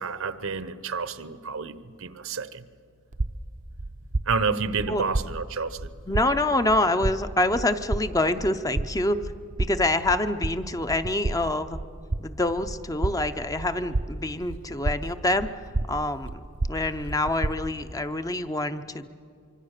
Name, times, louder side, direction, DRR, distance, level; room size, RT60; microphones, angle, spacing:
voice 1, 0.0-2.7 4.3-5.9, right 4 dB, 70° right, 13 dB, 0.9 m, -29 dB
sound 1, 3.1-17.9, right 2 dB, 35° right, 0.6 m, -32 dB
voice 2, 6.1-9.2 9.6-11.8 12.2-15.5 15.9-16.4 16.7-19.1, left 2 dB, 15° left, 9 dB, 0.6 m, -26 dB
25.0 x 25.0 x 6.6 m, 2.3 s
head